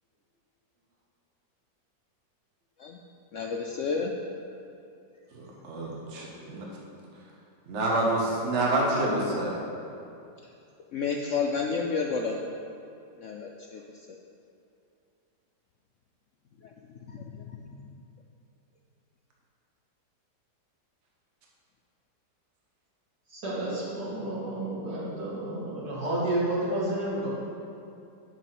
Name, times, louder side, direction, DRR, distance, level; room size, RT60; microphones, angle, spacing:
voice 1, 3.3-4.1 10.9-12.4 13.2-13.8 16.6-16.7 17.1-17.6, left 5 dB, 70° left, 1 dB, 0.7 m, -30 dB
voice 2, 5.3-6.7 7.7-9.6, right 1 dB, 45° right, -3 dB, 1.5 m, -27 dB
voice 3, 23.3-27.3, right 1 dB, 60° right, -7 dB, 2.9 m, -30 dB
11.0 x 4.5 x 5.9 m, 2.6 s
omnidirectional pair, 1.8 m